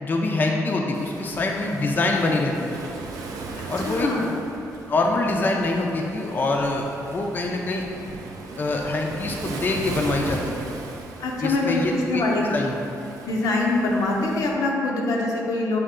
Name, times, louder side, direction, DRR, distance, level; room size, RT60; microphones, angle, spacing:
voice 1, 0.0-2.7 3.7-4.1 4.9-7.9 8.6-10.7 11.4-12.2 12.5-12.7, left 2 dB, 30° left, 1 dB, 0.3 m, -25 dB
Waves surf, 0.9-14.5, right 3 dB, 85° right, 0.4 m, -37 dB
voice 2, 3.5-4.3 11.2-11.8 12.1-12.5 13.3-15.8, left 2 dB, 85° left, -1 dB, 0.6 m, -24 dB
5.3 x 2.4 x 3.6 m, 2.7 s
cardioid pair, 120°, 6 cm